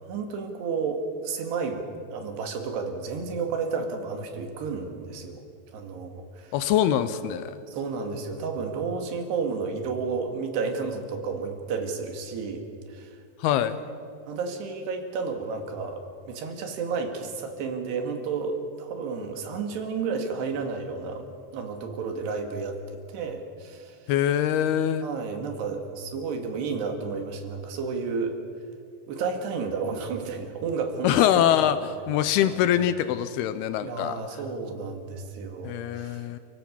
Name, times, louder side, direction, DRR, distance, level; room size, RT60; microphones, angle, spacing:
voice 1, 0.1-1.8 2.1-5.4 5.7-6.6 7.7-12.6 12.9-13.2 13.5-13.9 14.3-16.0 16.3-21.2 21.5-22.8 23.1-24.0 25.0-28.4 29.1-31.5 32.4-32.7 33.8-36.3, right 5 dB, 70° right, 5 dB, 4.0 m, -31 dB
voice 2, 6.5-7.6 13.4-13.8 24.1-25.1 31.0-34.2 35.6-36.4, left 10 dB, 80° left, 12 dB, 2.3 m, -23 dB
29.5 x 16.5 x 7.2 m, 2.4 s
omnidirectional pair, 5.3 m